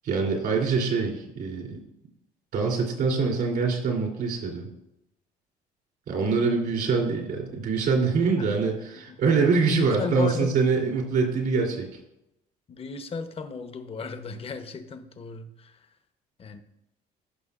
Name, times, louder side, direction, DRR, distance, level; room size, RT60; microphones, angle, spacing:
voice 1, 0.0-1.8 2.5-4.7 6.1-11.9, right 4 dB, 65° right, -2 dB, 3.1 m, -24 dB
voice 2, 9.7-10.6 12.7-15.9 16.4-16.6, left 5 dB, 35° left, 8 dB, 0.9 m, -34 dB
15.0 x 6.0 x 2.5 m, 0.85 s
cardioid pair, 110°, 17 cm